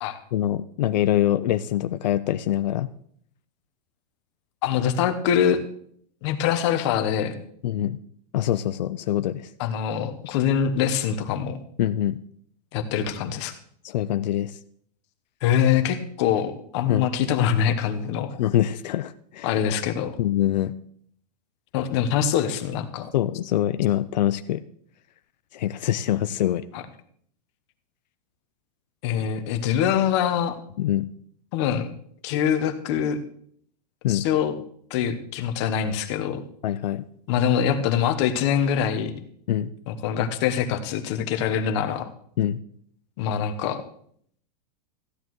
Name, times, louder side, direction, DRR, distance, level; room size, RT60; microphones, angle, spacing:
voice 1, 0.3-2.9 7.6-8.0 8.3-9.5 11.8-12.2 13.8-14.5 16.9-17.1 18.4-19.5 20.2-20.7 23.1-24.6 25.5-26.6 30.8-31.0 34.0-34.2 36.6-37.0 39.5-39.7 42.4-42.6, left 12 dB, 85° left, 12 dB, 0.5 m, -24 dB
voice 2, 4.6-5.6 6.2-7.4 9.6-11.6 12.7-13.5 15.4-18.3 19.4-20.1 21.7-23.1 26.7-26.8 29.0-30.6 31.5-31.9 32.2-33.2 34.1-34.5 34.9-36.4 37.3-39.2 39.9-42.1 43.2-43.8, left 8 dB, 40° left, 8 dB, 1.0 m, -24 dB
14.5 x 10.5 x 3.1 m, 0.63 s
supercardioid pair, 165°, 21 cm